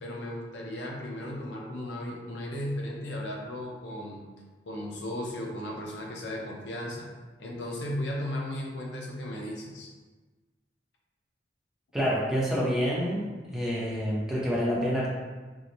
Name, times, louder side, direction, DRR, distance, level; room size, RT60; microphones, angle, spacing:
voice 1, 0.0-4.2 4.7-7.1 7.4-9.9, left 1 dB, 80° left, -1 dB, 0.6 m, -35 dB
voice 2, 11.9-15.1, equal, 5° right, -7 dB, 0.7 m, -28 dB
4.5 x 2.1 x 2.6 m, 1.3 s
head